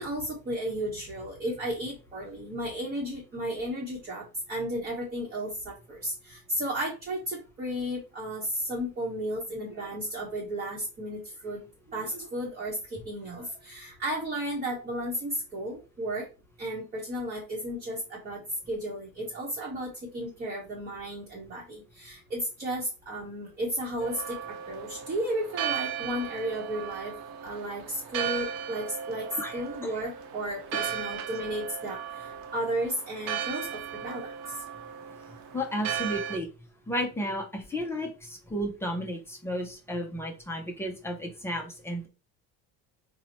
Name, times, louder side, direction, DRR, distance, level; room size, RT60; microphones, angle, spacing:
voice 1, 0.0-11.6 11.9-16.3 16.6-18.4 18.7-24.4 24.7-27.1 27.4-29.3 29.5-34.3, right 1 dB, 25° right, -3 dB, 0.8 m, -34 dB
Church bell, 24.0-36.4, right 8 dB, 70° right, 0.7 m, -36 dB
voice 2, 29.4-29.9 35.5-36.5 36.9-42.1, equal, 10° left, 1 dB, 0.3 m, -33 dB
4.1 x 2.0 x 2.8 m, 0.31 s
cardioid pair, 155°, 34 cm